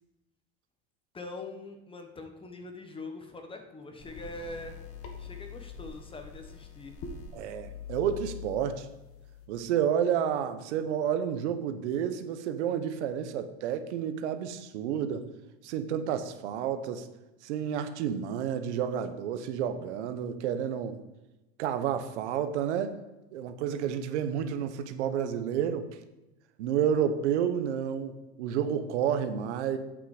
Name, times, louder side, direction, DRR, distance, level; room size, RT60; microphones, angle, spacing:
voice 1, 1.1-4.7 5.2-7.0, left 2 dB, 15° left, 6 dB, 1.1 m, -43 dB
sound 1, 4.0-9.5, left 6 dB, 40° left, 1.4 m, -44 dB
voice 2, 7.3-8.9 9.5-15.2 15.6-17.1 17.4-21.0 21.6-22.9 23.3-25.9 26.6-29.8, right 8 dB, 90° right, 9 dB, 0.9 m, -30 dB
8.6 x 6.0 x 4.9 m, 1.0 s
supercardioid pair, 130°, 34 cm